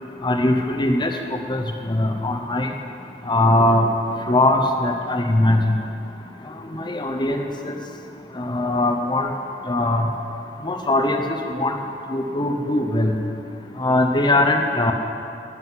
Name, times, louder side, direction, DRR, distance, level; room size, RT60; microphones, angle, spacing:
voice 1, 0.2-1.6 1.9-2.7 3.3-3.9 4.3-5.8 6.7-7.7 8.4-9.3 9.7-10.1 10.6-11.8 12.1-13.1 13.8-14.9, left 1 dB, 25° left, 4 dB, 0.9 m, -20 dB
11.5 x 7.8 x 9.3 m, 2.6 s
head